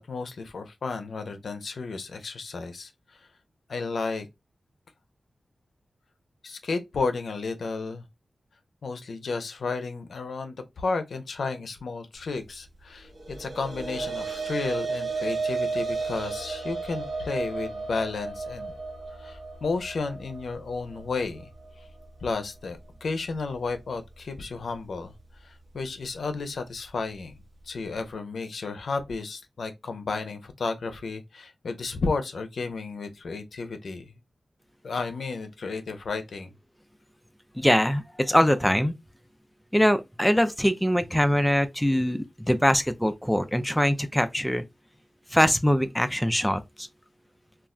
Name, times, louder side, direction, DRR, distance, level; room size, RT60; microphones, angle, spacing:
voice 1, 0.0-2.9 3.7-4.3 6.4-8.0 8.8-18.7 19.2-21.5 22.2-25.1 25.4-27.3 27.7-34.1 34.8-36.5, left 4 dB, 80° left, 0.5 m, -32 dB
sound 1, 13.3-21.8, right 4 dB, 55° right, 1.0 m, -33 dB
voice 2, 37.6-38.9 39.7-44.6 45.3-46.9, equal, 5° left, 0.3 m, -23 dB
2.3 x 2.1 x 3.6 m
wide cardioid pair, 80°, 0 cm